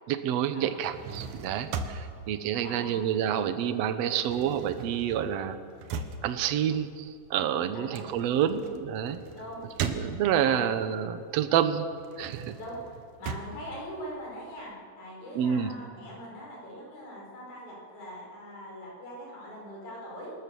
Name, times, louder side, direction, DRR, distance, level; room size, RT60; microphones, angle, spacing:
voice 1, 0.1-5.6 6.2-9.2 9.8-11.9 12.2-12.4 15.4-15.7, right 9 dB, 65° right, 10 dB, 2.1 m, -28 dB
sound 1, 0.7-3.5 3.8-10.6 11.1-14.6, right 5 dB, 80° right, 2.7 m, -39 dB
voice 2, 2.6-3.0 7.7-8.2 9.3-9.7 10.3-10.7 12.6-20.3, equal, 80° left, -3 dB, 7.1 m, -42 dB
25.0 x 19.5 x 7.1 m, 2.2 s
omnidirectional pair, 3.4 m